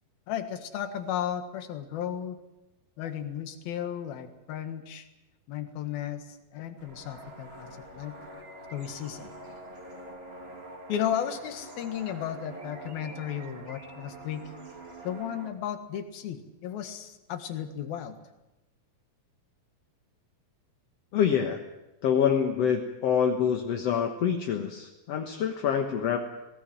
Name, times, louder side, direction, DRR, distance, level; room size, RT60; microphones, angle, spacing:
voice 1, 0.3-2.4 3.0-5.0 5.5-6.2 6.5-8.2 8.7-9.3 10.9-14.5 15.1-18.2, left 9 dB, 75° left, 8 dB, 3.5 m, -34 dB
sound 1, 6.8-15.5, right 2 dB, 20° right, 1.9 m, -45 dB
voice 2, 21.1-21.6 22.0-26.3, left 8 dB, 55° left, 3 dB, 1.9 m, -26 dB
21.0 x 18.0 x 9.1 m, 0.99 s
omnidirectional pair, 4.3 m